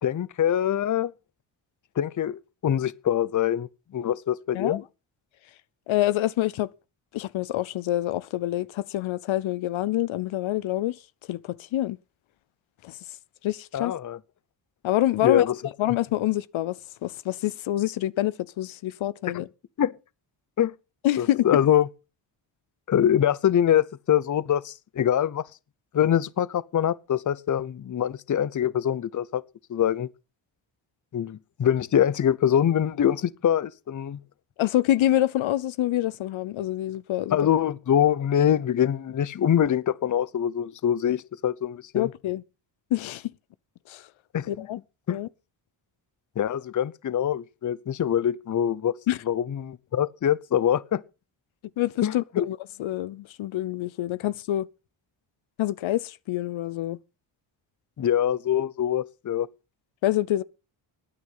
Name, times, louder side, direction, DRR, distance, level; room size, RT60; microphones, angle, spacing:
voice 1, 0.0-1.1 2.0-4.8 13.7-14.2 15.2-15.6 19.8-19.9 20.6-20.7 21.2-21.9 22.9-25.4 25.9-29.4 29.7-30.1 31.1-34.2 37.3-42.1 44.3-44.7 45.1-45.2 46.4-48.9 49.3-51.0 52.0-52.4 58.0-59.5, left 10 dB, 40° left, 0.7 m, -24 dB
voice 2, 5.9-6.7 7.1-11.0 11.3-12.0 12.8-13.0 13.4-14.0 14.8-15.5 15.8-19.5 21.0-21.5 34.6-37.4 41.9-42.4 42.9-43.3 43.9-44.1 44.5-44.8 45.1-45.3 49.1-49.2 51.8-54.7 55.6-57.0 60.0-60.4, left 14 dB, 75° left, 0.7 m, -26 dB
16.0 x 9.5 x 5.6 m
cardioid pair, 90°, 48 cm